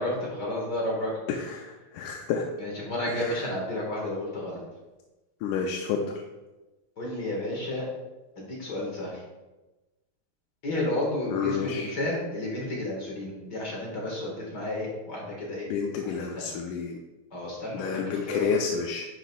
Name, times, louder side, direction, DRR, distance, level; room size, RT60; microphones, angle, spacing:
voice 1, 0.0-1.1 2.6-4.6 7.0-7.9 8.4-9.2 10.6-15.7 16.1-16.5 17.3-18.5, left 1 dB, 45° left, -3 dB, 1.6 m, -31 dB
voice 2, 1.3-2.5 3.1-3.5 5.4-6.2 11.3-12.0 15.7-17.0 17.7-19.1, left 6 dB, 90° left, 2 dB, 2.1 m, -30 dB
10.5 x 5.1 x 2.3 m, 1.1 s
omnidirectional pair, 3.5 m